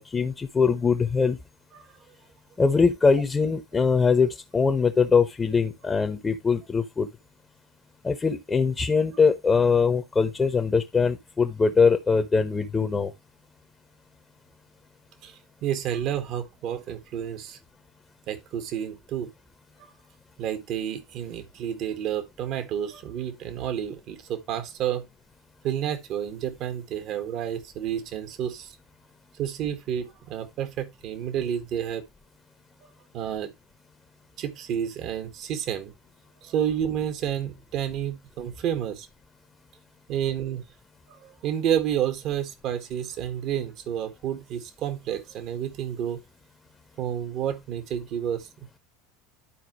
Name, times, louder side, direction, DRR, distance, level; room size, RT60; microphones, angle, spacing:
voice 1, 0.0-1.4 2.6-7.1 8.0-13.1, left 5 dB, 20° left, 1.0 m, -22 dB
voice 2, 15.2-17.6 18.3-19.3 19.8-19.9 20.4-25.1 25.6-28.7 29.4-32.0 33.1-33.5 34.4-35.9 36.4-39.1 40.1-40.6 41.1-46.2 47.0-48.5, right 9 dB, 50° right, 1.6 m, -30 dB
12.0 x 4.5 x 3.0 m
figure-of-eight pair, 75°, 0 cm